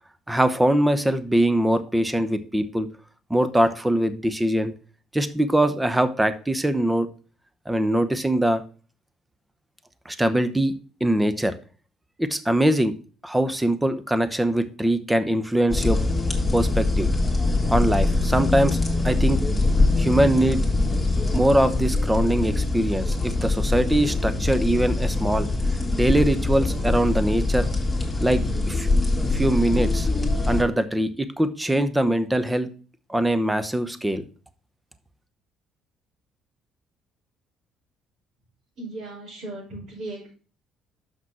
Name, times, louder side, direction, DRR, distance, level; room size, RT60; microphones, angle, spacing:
voice 1, 0.3-2.9 3.3-4.7 5.1-7.1 7.7-8.6 10.1-11.5 12.2-12.9 13.2-16.0 16.5-17.1 17.7-18.8 19.0-19.4 20.0-20.6 21.3-25.5 25.9-27.7 28.2-28.9 29.3-30.1 30.5-32.7 33.1-34.2, right 1 dB, 10° right, 12 dB, 0.9 m, -22 dB
sound 1, 15.7-30.6, left 2 dB, 15° left, 2.3 m, -23 dB
voice 2, 38.8-40.3, right 2 dB, 65° right, -7 dB, 4.2 m, -36 dB
6.1 x 5.9 x 5.5 m, 0.39 s
cardioid pair, 85°, 0 cm